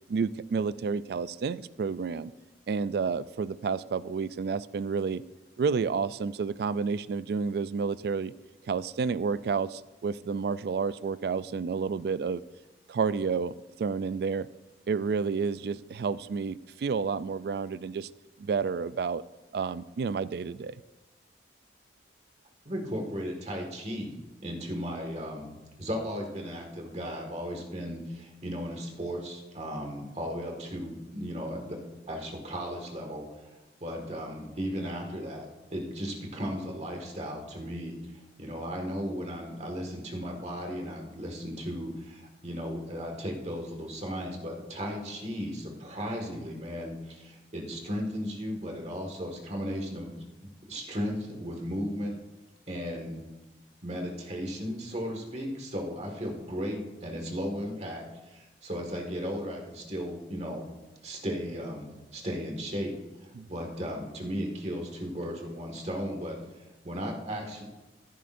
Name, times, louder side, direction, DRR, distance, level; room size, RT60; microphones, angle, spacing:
voice 1, 0.1-2.3 2.7-5.2 5.6-8.3 8.7-12.4 12.9-14.5 14.9-18.1 18.4-19.2 19.5-20.7 63.4-63.5, right 5 dB, 60° right, 17 dB, 0.3 m, -30 dB
voice 2, 22.6-24.1 24.4-31.8 32.1-33.3 33.8-38.0 38.4-50.2 50.6-52.1 52.7-53.2 53.8-60.7 61.0-66.4 66.8-67.6, equal, 40° right, 1 dB, 1.8 m, -35 dB
14.5 x 10.0 x 2.6 m, 1.1 s
head